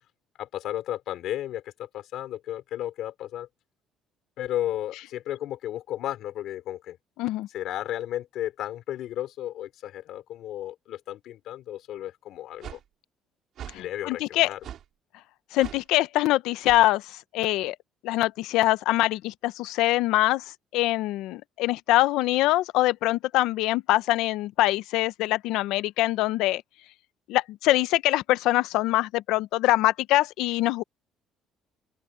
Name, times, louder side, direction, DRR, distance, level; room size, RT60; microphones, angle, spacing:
voice 1, 0.4-3.5 4.4-7.0 7.5-12.8 13.7-14.6, left 12 dB, 60° left, 3.1 m, -33 dB
sound 1, 12.6-12.8 13.6-13.8 14.6-14.8 15.6-15.8 16.6-16.8, right 10 dB, 45° right, 4.2 m, -40 dB
voice 2, 13.7-14.5 15.5-17.8 18.0-26.6 27.3-30.8, left 16 dB, 75° left, 0.7 m, -24 dB
open air
cardioid pair, 175°, 0 cm